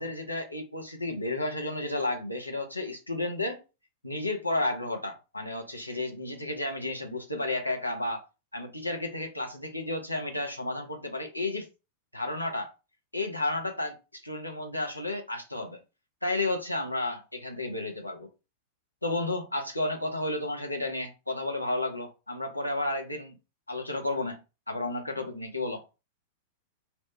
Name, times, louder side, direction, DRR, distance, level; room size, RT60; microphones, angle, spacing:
voice 1, 0.0-3.6 4.0-8.2 8.5-11.7 12.1-12.7 13.1-15.8 16.2-18.3 19.0-23.4 23.7-24.4 24.7-25.8, left 2 dB, 85° left, 0.5 m, -32 dB
2.9 x 2.1 x 3.1 m
figure-of-eight pair, 90°, 0 cm